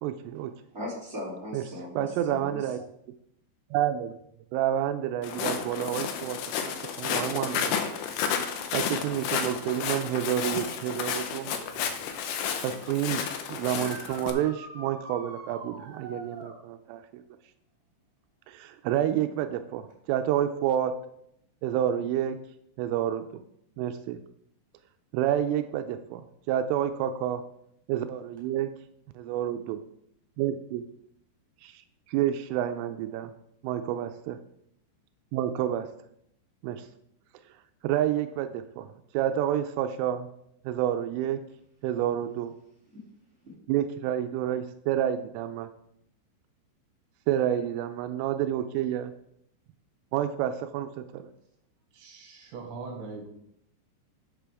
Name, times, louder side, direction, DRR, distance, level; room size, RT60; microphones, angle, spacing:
voice 1, 0.0-0.5 1.5-1.6 2.0-2.8 3.7-4.1 4.5-7.8 8.7-11.9 12.6-13.2 13.5-17.2 18.5-20.9 21.6-22.4 22.8-23.2 23.8-24.2 25.1-26.2 26.5-27.4 27.9-28.7 29.2-29.8 30.4-30.8 31.6-31.8 32.1-33.3 33.6-34.4 35.3-35.9 36.6-36.9 37.8-38.9 39.1-40.3 40.7-41.4 41.8-42.5 43.7-45.7 47.3-49.1 50.1-51.3, right 11 dB, 90° right, 8 dB, 3.2 m, -29 dB
voice 2, 0.7-2.7 42.9-43.0 43.4-43.5, left 1 dB, 25° right, -5 dB, 1.6 m, -38 dB
Walk footsteps, 5.2-14.3, left 7 dB, 75° left, 2.7 m, -32 dB
sound 1, 13.6-16.6 19.9-20.0 22.0-22.1 28.4-28.5, right 2 dB, 45° right, 3.4 m, -44 dB
voice 3, 51.9-53.3, right 4 dB, 70° right, 0 dB, 3.9 m, -41 dB
11.0 x 8.0 x 3.5 m, 0.73 s
omnidirectional pair, 5.6 m